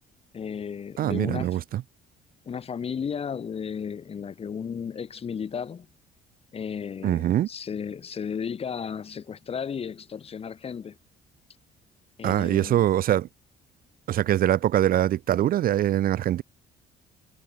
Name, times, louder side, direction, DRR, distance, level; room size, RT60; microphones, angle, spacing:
voice 1, 0.3-1.6 2.4-5.9 6.5-11.0 12.2-12.9, left 7 dB, 35° left, 1.4 m, -34 dB
voice 2, 1.0-1.8 7.0-7.5 12.2-13.3 14.1-16.4, right 12 dB, 60° right, 1.0 m, -23 dB
cardioid pair, 110°, 17 cm